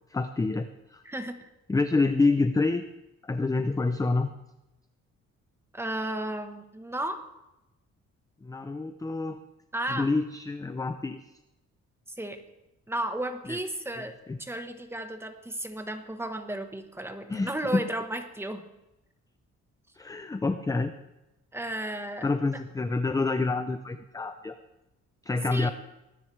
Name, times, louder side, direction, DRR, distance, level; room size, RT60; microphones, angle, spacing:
voice 1, 0.1-1.0 1.7-2.8 3.2-4.3 8.4-9.4 9.9-11.2 13.5-13.6 14.0-14.4 17.3-17.8 20.0-20.9 22.2-24.6 25.3-25.7, left 3 dB, 10° left, 9 dB, 0.5 m, -27 dB
voice 2, 1.0-1.5 5.7-7.2 9.7-10.1 12.2-12.4 12.9-18.6 21.5-22.3 25.5-25.7, right 1 dB, 10° right, 6 dB, 1.2 m, -34 dB
20.0 x 10.0 x 3.3 m, 0.95 s
cardioid pair, 110°, 29 cm